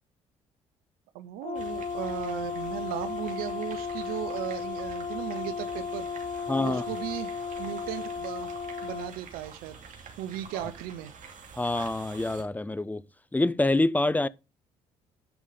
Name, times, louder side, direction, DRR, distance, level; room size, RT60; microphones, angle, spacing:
voice 1, 1.1-9.8 10.2-11.1, right 12 dB, 75° right, 0.7 m, -37 dB
Brass instrument, 1.4-9.1, left 5 dB, 45° left, 1.0 m, -35 dB
sound 1, 1.5-12.4, right 5 dB, 55° right, 2.7 m, -47 dB
voice 2, 6.5-6.8 10.5-10.6 11.6-13.0 13.3-14.3, left 2 dB, 10° left, 0.6 m, -26 dB
10.0 x 5.5 x 4.9 m
hypercardioid pair, 55°, 15 cm